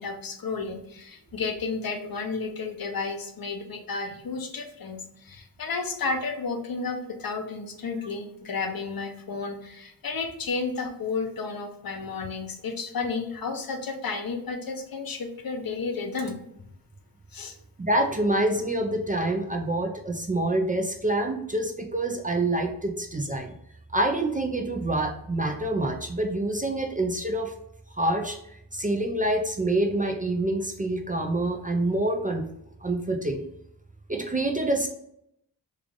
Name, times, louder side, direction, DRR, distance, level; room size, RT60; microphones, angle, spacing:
voice 1, 0.0-16.4 17.3-17.5, left 4 dB, 60° left, 5 dB, 0.7 m, -32 dB
voice 2, 17.8-23.5 23.9-27.5 28.0-28.4 28.7-32.5 32.8-33.4 34.1-34.9, right 1 dB, 20° right, 3 dB, 0.4 m, -26 dB
3.2 x 2.4 x 3.6 m, 0.76 s
cardioid pair, 50°, 41 cm